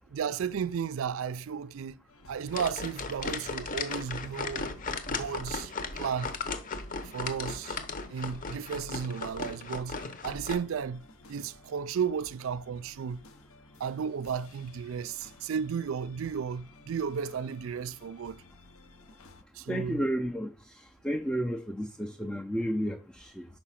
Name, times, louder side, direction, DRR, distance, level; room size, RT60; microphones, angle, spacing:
voice 1, 0.1-2.0 2.3-4.7 5.1-6.3 7.0-7.8 8.1-10.0 10.2-11.0 11.3-13.2 13.8-18.4 19.5-20.0, right 7 dB, 65° right, 0.4 m, -34 dB
sound 1, 2.1-19.4, left 2 dB, 80° left, 0.9 m, -56 dB
sound 2, 2.5-10.5, left 4 dB, 40° left, 0.8 m, -36 dB
voice 2, 19.7-23.5, equal, 5° left, 0.4 m, -32 dB
5.4 x 4.9 x 5.7 m
head